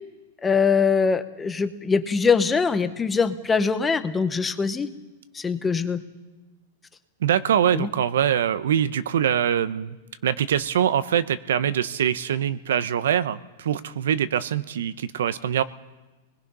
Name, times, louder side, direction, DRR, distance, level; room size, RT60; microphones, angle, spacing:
voice 1, 0.4-4.9 5.3-6.0 7.7-7.9, left 5 dB, 10° left, 9 dB, 0.9 m, -22 dB
voice 2, 7.2-10.0 10.2-15.6, right 9 dB, 90° right, 14 dB, 0.9 m, -23 dB
28.5 x 21.0 x 5.5 m, 1.2 s
supercardioid pair, 165°, 0 cm